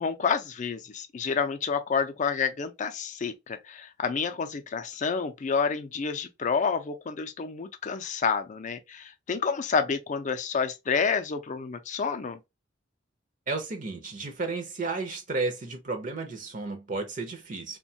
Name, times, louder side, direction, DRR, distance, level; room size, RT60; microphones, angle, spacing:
voice 1, 0.0-12.4, left 5 dB, 40° left, 0.4 m, -29 dB
voice 2, 13.5-17.8, right 3 dB, 45° right, 0.5 m, -33 dB
3.0 x 2.2 x 2.6 m
head